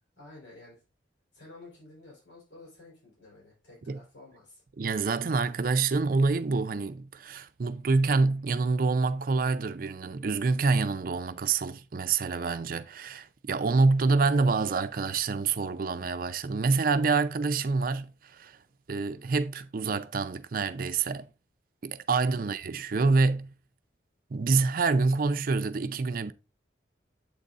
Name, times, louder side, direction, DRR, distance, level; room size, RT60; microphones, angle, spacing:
voice 1, 0.2-0.8 1.3-4.6 22.2-22.5, left 2 dB, 90° left, 3.6 m, -51 dB
voice 2, 4.8-18.6 18.9-21.3 21.8-23.5 24.3-26.3, right 4 dB, 50° right, 0.5 m, -27 dB
8.2 x 4.1 x 3.6 m
head